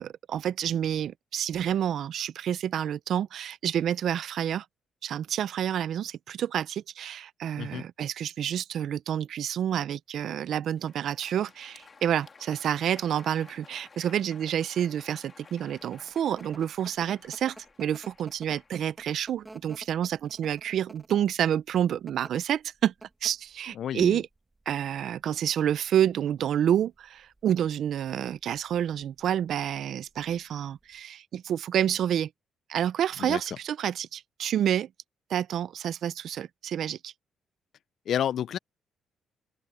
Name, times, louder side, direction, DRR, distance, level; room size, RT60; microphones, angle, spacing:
voice 1, 0.0-4.6 5.0-22.9 23.2-24.3 24.7-32.3 32.7-34.9 35.3-37.1, right 10 dB, 70° right, 0.6 m, -29 dB
Crowd, 10.6-19.6, left 4 dB, 35° left, 2.5 m, -53 dB
sound 1, 15.8-31.0, right 2 dB, 20° right, 1.4 m, -53 dB
voice 2, 23.8-24.2 33.2-33.4 38.1-38.6, left 10 dB, 65° left, 0.5 m, -30 dB
open air
cardioid pair, 90°, 0 cm